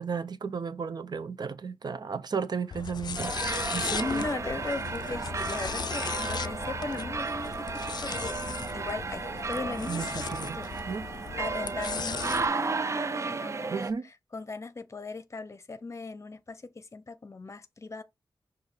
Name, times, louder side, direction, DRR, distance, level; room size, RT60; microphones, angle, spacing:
voice 1, 0.0-4.3 9.9-10.6 10.9-11.1 13.7-14.1, right 5 dB, 60° right, 0.7 m, -34 dB
sound 1, 2.7-12.5, left 6 dB, 60° left, 0.4 m, -37 dB
sound 2, 3.2-13.9, right 4 dB, 35° right, 0.4 m, -34 dB
voice 2, 3.8-8.4 8.7-10.7 11.4-13.8 14.3-18.0, left 3 dB, 35° left, 0.8 m, -38 dB
6.2 x 2.8 x 5.5 m
wide cardioid pair, 80°, 8 cm